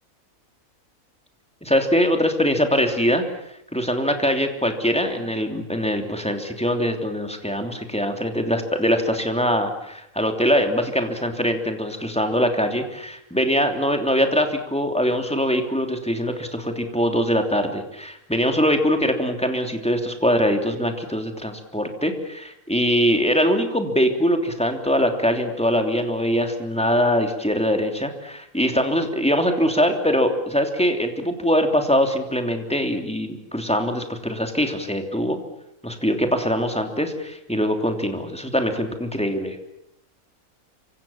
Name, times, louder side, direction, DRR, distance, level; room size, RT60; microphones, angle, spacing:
voice 1, 1.6-3.2 3.7-35.4 35.8-39.6, equal, 5° left, 5 dB, 3.1 m, -22 dB
27.5 x 25.0 x 7.3 m, 0.79 s
omnidirectional pair, 1.5 m